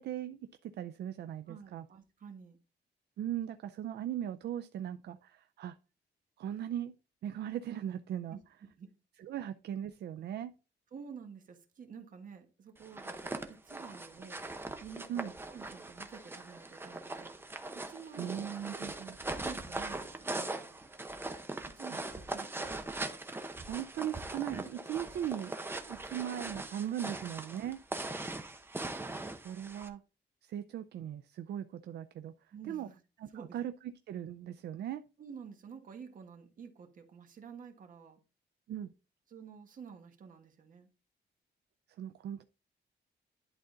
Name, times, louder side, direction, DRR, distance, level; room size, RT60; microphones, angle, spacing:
voice 1, 0.0-1.8 3.2-5.8 6.4-6.9 7.2-8.4 9.2-10.5 15.1-15.3 18.2-19.2 23.6-25.6 25.9-27.8 29.4-30.0 30.4-32.3 32.6-32.9 33.2-33.7 34.1-35.0 38.7-38.9 42.0-42.4, right 10 dB, 65° right, 0.5 m, -38 dB
voice 2, 1.5-2.6 8.3-8.9 10.9-14.5 14.8-17.3 17.7-18.6 19.3-20.8 21.7-23.0 32.5-33.0 33.3-33.6 35.2-38.2 39.3-40.9, right 6 dB, 50° right, 1.4 m, -50 dB
sound 1, 12.8-29.9, right 2 dB, 10° right, 0.8 m, -41 dB
11.0 x 3.9 x 3.8 m
wide cardioid pair, 165°, 18 cm